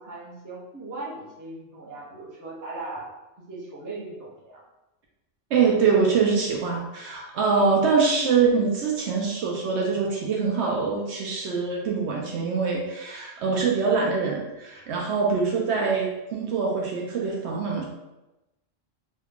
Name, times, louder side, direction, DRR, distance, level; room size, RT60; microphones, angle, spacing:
voice 1, 0.0-4.6 15.1-15.4, right 2 dB, 20° right, -5 dB, 0.5 m, -39 dB
voice 2, 5.5-17.8, right 5 dB, 65° right, -1 dB, 0.8 m, -24 dB
3.1 x 2.3 x 3.4 m, 0.98 s
omnidirectional pair, 1.3 m